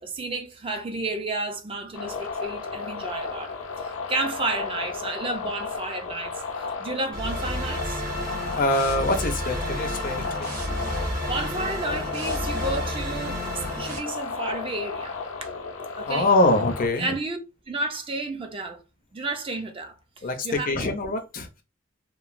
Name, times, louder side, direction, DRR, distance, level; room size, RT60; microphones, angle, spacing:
voice 1, 0.0-6.4 6.8-8.0 11.0-15.1 15.4-15.5 15.9-16.3 17.0-17.4 17.7-18.8 19.1-20.9, right 2 dB, 25° right, 0.4 m, -32 dB
sound 1, 1.9-16.9, left 4 dB, 80° left, 0.6 m, -34 dB
sound 2, 7.1-14.0, equal, 45° right, 0.9 m, -31 dB
voice 2, 8.5-10.2 16.0-17.1 20.2-21.5, left 2 dB, 40° left, 0.5 m, -23 dB
3.0 x 2.2 x 2.4 m
head